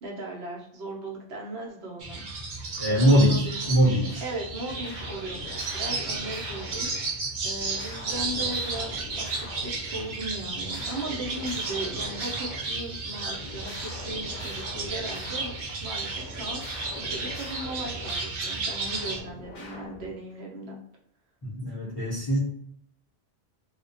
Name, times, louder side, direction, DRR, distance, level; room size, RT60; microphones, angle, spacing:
voice 1, 0.0-2.2 2.9-3.6 4.2-15.5 15.8-16.6 16.9-20.8, right 1 dB, 75° right, -2 dB, 1.0 m, -37 dB
sound 1, 2.0-19.2, right 3 dB, 55° right, 0.6 m, -33 dB
voice 2, 2.8-4.2 21.4-22.4, right 1 dB, 35° left, -9 dB, 0.5 m, -22 dB
sound 2, 3.6-4.3 4.7-7.1 7.5-10.1 10.4-18.3 18.7-20.3, left 2 dB, 65° left, 0.8 m, -43 dB
2.4 x 2.1 x 2.5 m, 0.73 s
omnidirectional pair, 1.1 m